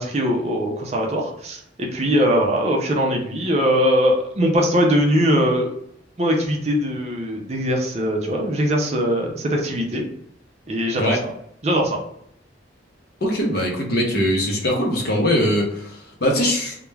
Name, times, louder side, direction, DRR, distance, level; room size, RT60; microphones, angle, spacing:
voice 1, 0.0-5.7 6.2-10.1 10.7-11.3 11.6-12.0, equal, 35° right, 1 dB, 0.5 m, -21 dB
voice 2, 13.2-16.8, equal, 55° left, 0 dB, 0.7 m, -21 dB
2.3 x 2.1 x 3.1 m, 0.72 s
head